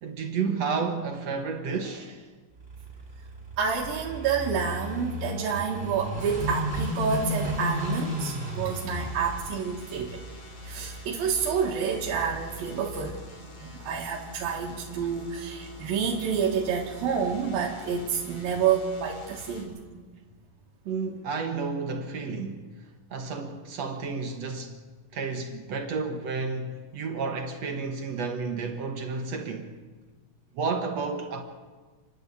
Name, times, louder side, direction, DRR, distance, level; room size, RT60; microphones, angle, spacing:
voice 1, 0.0-2.3 20.9-22.7 23.1-24.8 25.1-29.7 30.6-31.4, right 4 dB, 60° right, 2.1 m, -31 dB
Car passing by / Idling, 2.6-13.3, equal, 15° right, 3.1 m, -35 dB
voice 2, 3.6-10.2 10.6-13.2 13.6-19.8, right 6 dB, 85° right, 3.5 m, -28 dB
sound 1, 6.2-19.6, left 2 dB, 85° left, 5.5 m, -47 dB
30.0 x 11.5 x 8.4 m
omnidirectional pair, 4.0 m